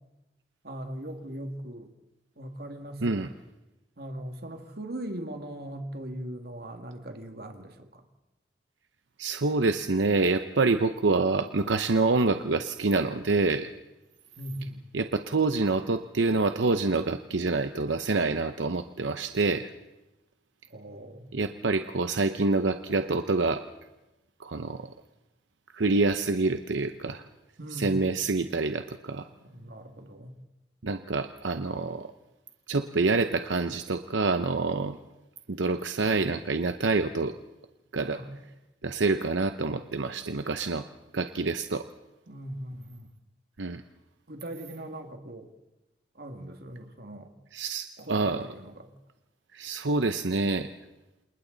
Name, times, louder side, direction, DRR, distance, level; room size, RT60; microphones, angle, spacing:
voice 1, 0.6-1.9 2.4-3.3 4.0-8.0 14.4-14.8 20.7-21.4 27.6-28.0 29.4-30.3 38.0-38.4 42.3-43.1 44.3-45.5 46.2-47.3 48.0-48.9, right 1 dB, 55° right, 5 dB, 2.2 m, -40 dB
voice 2, 9.2-13.7 14.9-19.7 21.3-23.6 24.4-24.9 25.7-27.2 27.7-29.3 30.8-32.1 32.7-35.0 35.5-37.3 37.9-38.2 38.8-40.8 41.1-41.8 43.6-43.8 47.5-48.5 49.5-50.7, right 3 dB, 85° right, 8 dB, 0.8 m, -27 dB
29.0 x 27.5 x 4.0 m, 0.99 s
head